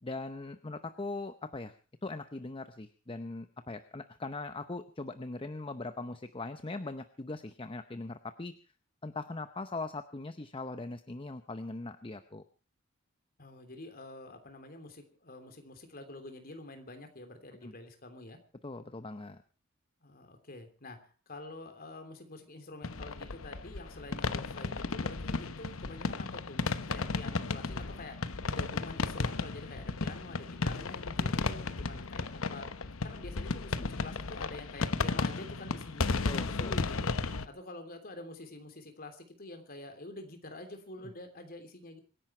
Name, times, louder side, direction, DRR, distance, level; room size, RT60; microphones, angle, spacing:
voice 1, 0.0-8.5 9.0-12.4 17.6-17.7 18.6-19.4 33.8-33.9 36.3-36.8, left 2 dB, 25° left, 10 dB, 0.7 m, -40 dB
voice 2, 13.4-18.4 20.0-28.2 28.5-32.7 33.0-36.1 36.6-37.1 37.4-42.0, left 2 dB, 45° left, 7 dB, 3.1 m, -47 dB
sound 1, 22.8-37.5, left 3 dB, 70° left, 1.0 m, -34 dB
25.5 x 11.0 x 4.4 m, 0.36 s
head